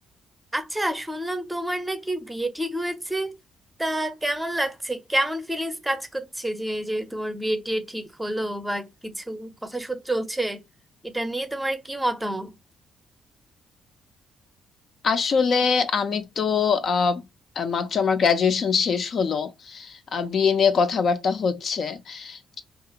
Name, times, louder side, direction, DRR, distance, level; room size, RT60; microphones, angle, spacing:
voice 1, 0.5-3.4 3.8-10.6 11.0-12.5, right 1 dB, 10° right, 0.6 m, -28 dB
voice 2, 15.0-17.3 17.6-22.6, left 5 dB, 55° left, 0.4 m, -23 dB
2.4 x 2.3 x 2.8 m
cardioid pair, 90°, 0 cm